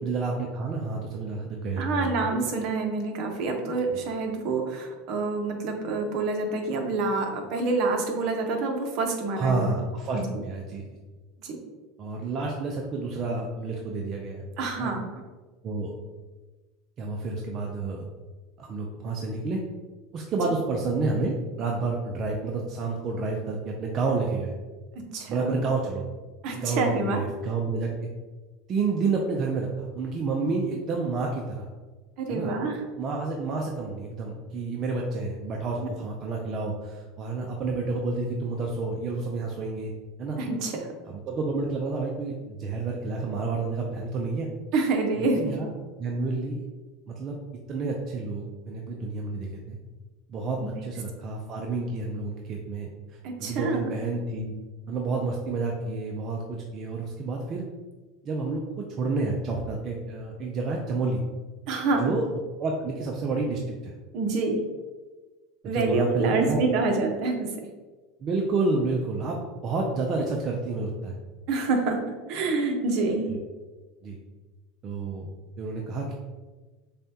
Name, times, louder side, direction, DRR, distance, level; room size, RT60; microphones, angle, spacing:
voice 1, 0.0-2.1 3.9-4.0 9.3-11.0 12.0-14.4 14.8-14.9 15.6-15.9 17.0-18.0 18.6-19.6 20.1-24.5 25.3-26.0 26.5-28.1 28.7-31.7 32.3-32.5 33.0-39.9 40.2-40.4 41.1-44.5 45.2-45.7 46.0-46.7 47.1-47.4 47.7-49.8 50.3-52.9 53.4-54.5 54.9-57.6 58.2-61.2 62.0-62.3 62.6-64.0 65.6-66.6 68.2-71.2 73.3-73.4 74.0-74.2 74.8-75.3 75.6-76.1, right 3 dB, 35° right, -1 dB, 0.5 m, -29 dB
voice 2, 1.8-9.7 10.1-10.2 11.4-11.6 14.6-15.0 25.1-25.6 26.4-27.2 32.2-32.8 40.4-40.9 44.7-45.6 53.2-53.9 61.7-62.0 64.1-64.6 65.6-67.5 71.5-72.0 72.3-73.3, right 3 dB, 55° right, 3 dB, 0.8 m, -27 dB
6.6 x 2.3 x 2.8 m, 1.3 s
supercardioid pair, 130°, 0 cm